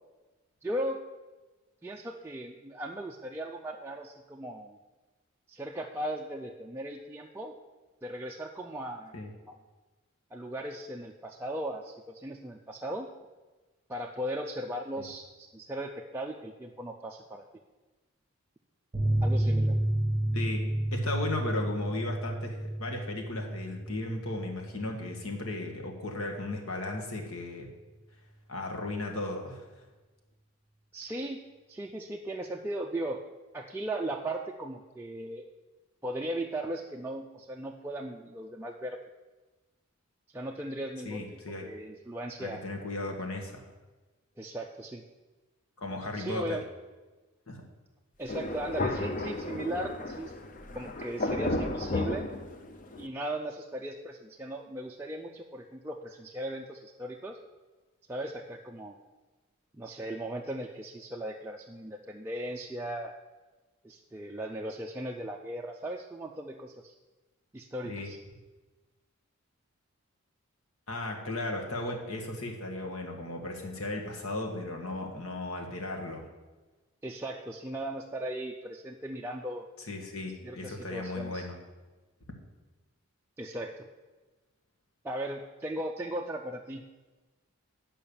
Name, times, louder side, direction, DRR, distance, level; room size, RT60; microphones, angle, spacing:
voice 1, 0.6-1.0 1.8-4.8 5.5-7.5 8.0-9.1 9.5-9.6 10.3-13.1 13.9-17.4 19.2-19.8 30.9-31.4 31.7-33.2 33.5-35.5 36.0-39.0 40.3-42.6 44.4-45.0 46.1-46.6 48.2-50.3 50.7-52.3 53.0-57.4 58.1-59.0 59.7-63.1 63.8-66.9 67.5-68.2 77.0-79.7 80.4-81.5 83.4-83.9 85.0-86.8, right 1 dB, 10° right, -1 dB, 0.4 m, -37 dB
sound 1, 18.9-26.0 26.3-26.4 26.7-26.8, right 1 dB, 25° right, 1.1 m, -31 dB
voice 2, 19.1-19.6 20.3-20.6 20.9-27.7 28.5-29.6 41.0-41.7 42.4-43.7 45.8-46.6 47.5-47.6 67.8-68.1 70.9-76.3 79.9-81.6, left 2 dB, 75° left, 2 dB, 1.5 m, -36 dB
Thunder, 48.3-53.1, left 2 dB, 35° left, 0.5 m, -33 dB
8.8 x 5.5 x 6.8 m, 1.2 s
head